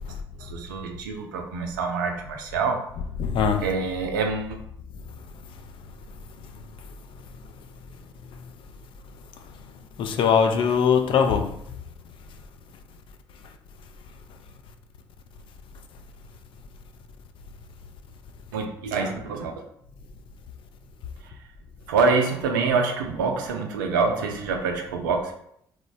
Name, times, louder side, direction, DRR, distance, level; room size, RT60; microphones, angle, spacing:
voice 1, 0.4-2.9 3.6-4.6 18.5-19.5 21.9-25.3, right 4 dB, 85° right, 0.4 m, -26 dB
voice 2, 3.2-3.7 6.4-6.5 10.0-11.5, left 6 dB, 55° left, 0.4 m, -21 dB
3.0 x 2.0 x 2.6 m
hypercardioid pair, 45°, 10 cm